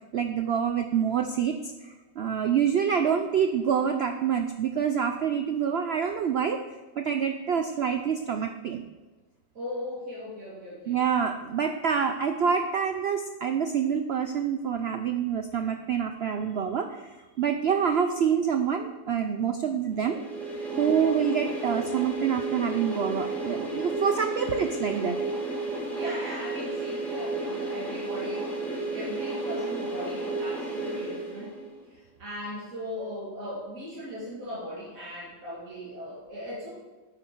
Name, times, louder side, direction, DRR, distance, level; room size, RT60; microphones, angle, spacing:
voice 1, 0.1-6.6 7.0-8.8 10.9-20.2 20.8-25.2, right 7 dB, 80° right, 7 dB, 0.5 m, -27 dB
voice 2, 9.5-11.0 20.7-21.0 25.9-31.6 31.9-36.8, left 1 dB, 55° right, -7 dB, 2.8 m, -38 dB
sound 1, 20.0-31.9, right 2 dB, ahead, 2.1 m, -32 dB
8.9 x 8.9 x 4.6 m, 1.2 s
omnidirectional pair, 1.7 m